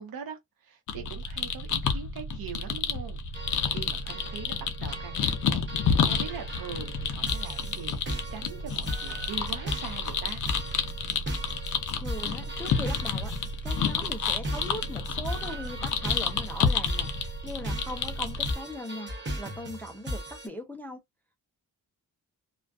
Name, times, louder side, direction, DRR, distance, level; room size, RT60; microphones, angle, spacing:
voice 1, 0.0-10.4, right 6 dB, 75° right, 0.9 m, -42 dB
sound 1, 0.9-18.5, left 5 dB, 60° left, 0.5 m, -30 dB
sound 2, 3.3-20.5, equal, 30° right, 0.8 m, -38 dB
voice 2, 11.9-13.3 13.6-17.1 17.4-21.0, left 1 dB, 5° left, 0.4 m, -39 dB
2.4 x 2.2 x 2.3 m
wide cardioid pair, 175°, 36 cm